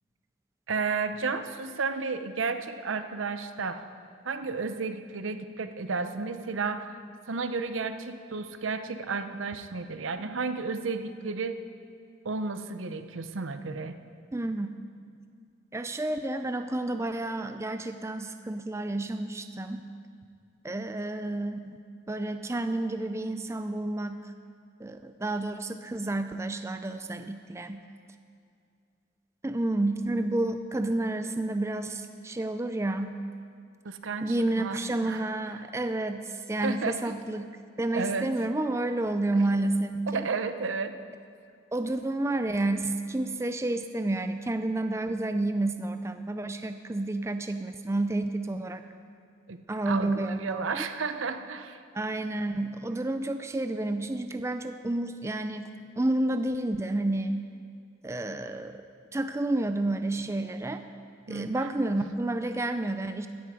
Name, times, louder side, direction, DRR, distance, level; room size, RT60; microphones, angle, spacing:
voice 1, 0.7-3.9 4.2-6.9 7.3-11.6 12.2-14.0 33.8-35.2 36.6-37.1 37.9-38.3 40.1-41.0 49.5-51.8 61.3-61.7, right 4 dB, 90° right, 9 dB, 0.7 m, -32 dB
voice 2, 14.3-14.7 15.7-19.8 20.6-21.8 22.1-24.2 24.8-27.8 29.4-33.2 34.2-37.5 37.8-40.3 41.7-48.8 49.7-50.9 51.9-57.4 58.0-58.8 59.1-60.8 61.3-63.3, right 2 dB, 15° right, 8 dB, 0.4 m, -30 dB
15.0 x 10.5 x 5.0 m, 2.3 s
head